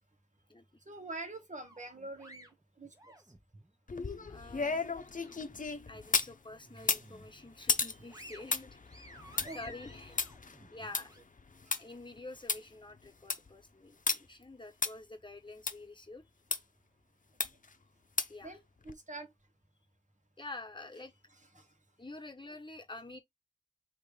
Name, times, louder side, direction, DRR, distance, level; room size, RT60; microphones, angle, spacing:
voice 1, 0.8-2.5 2.8-3.1 9.4-9.7 11.6-11.7 18.4-19.3 21.5-21.7, right 2 dB, 70° right, 1.4 m, -45 dB
sound 1, 1.6-3.7 4.1-5.6 5.9-6.1 6.6-7.4 7.8-11.2, equal, 25° right, 1.2 m, -55 dB
sound 2, 3.9-6.3 6.8-11.8 12.2-12.3 12.5-12.6 13.0-13.5 14.1-14.2 14.8-14.9 15.7-15.8 16.5-16.6 17.4-17.7 18.2-18.5 18.9-19.0, left 4 dB, 90° left, 0.5 m, -34 dB
voice 2, 4.3-4.8 5.9-9.0 9.5-10.2 10.7-11.1 11.8-16.2 18.3-18.6 20.4-21.1 22.0-23.2, left 2 dB, 35° left, 1.2 m, -48 dB
3.6 x 3.0 x 4.8 m
wide cardioid pair, 45°, 13 cm